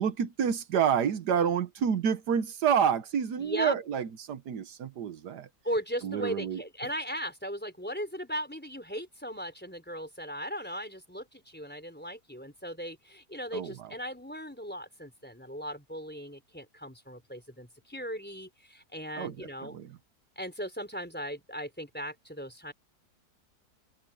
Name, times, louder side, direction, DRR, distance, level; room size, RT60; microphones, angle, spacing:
voice 1, 0.0-5.5 6.0-6.6 13.5-13.9 19.2-20.0, right 7 dB, 80° right, 1.6 m, -29 dB
voice 2, 3.4-3.7 5.6-19.8 20.4-22.7, equal, 5° left, 4.4 m, -37 dB
open air
omnidirectional pair, 1.7 m